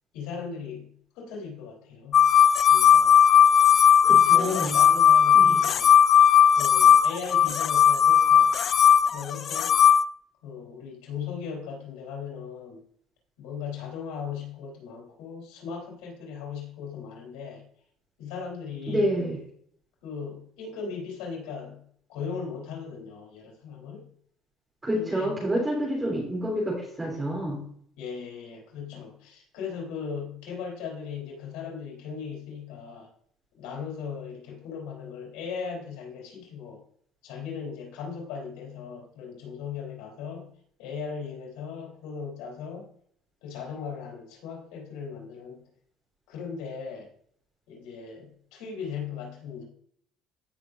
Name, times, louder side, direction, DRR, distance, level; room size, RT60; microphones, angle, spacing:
voice 1, 0.1-2.3 2.7-3.2 4.1-5.9 6.5-8.5 9.1-9.9 10.4-12.8 13.4-17.6 18.2-19.2 20.0-21.8 22.1-24.1 24.9-25.4 26.0-26.2 28.0-33.1 33.6-36.8 37.2-40.5 40.8-42.9 43.4-45.6 46.3-47.1 47.7-49.6, left 6 dB, 85° left, -2 dB, 3.6 m, -38 dB
sound 1, 2.1-10.0, left 9 dB, 40° left, 0.3 m, -17 dB
voice 2, 4.0-4.8 5.3-5.6 18.9-19.4 24.8-27.6, right 1 dB, 15° right, -4 dB, 3.7 m, -28 dB
16.0 x 6.1 x 2.6 m, 0.64 s
cardioid pair, 125°, 0 cm